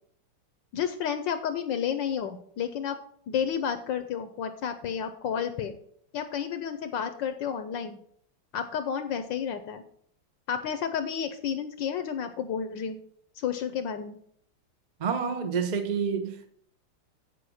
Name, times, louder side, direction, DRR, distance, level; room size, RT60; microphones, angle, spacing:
voice 1, 0.7-3.0 3.3-5.7 6.1-8.0 8.5-9.8 10.5-13.0 13.4-14.2, left 8 dB, 70° left, 1.2 m, -31 dB
voice 2, 15.0-16.5, right 6 dB, 70° right, 0.4 m, -28 dB
8.4 x 5.0 x 6.3 m
omnidirectional pair, 2.4 m